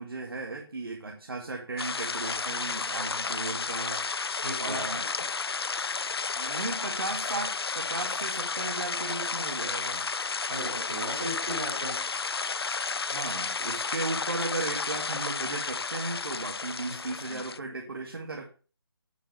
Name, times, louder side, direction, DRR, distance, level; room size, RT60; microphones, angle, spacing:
voice 1, 0.0-4.2 4.6-5.1 6.3-10.1 13.1-18.5, right 3 dB, 65° right, 1 dB, 2.3 m, -36 dB
sound 1, 1.8-17.6, left 5 dB, 75° left, 0.5 m, -32 dB
voice 2, 4.4-5.3 10.5-12.0 16.9-17.4, right 1 dB, 20° right, -3 dB, 3.5 m, -37 dB
9.8 x 7.4 x 4.9 m, 0.38 s
figure-of-eight pair, 175°, 13 cm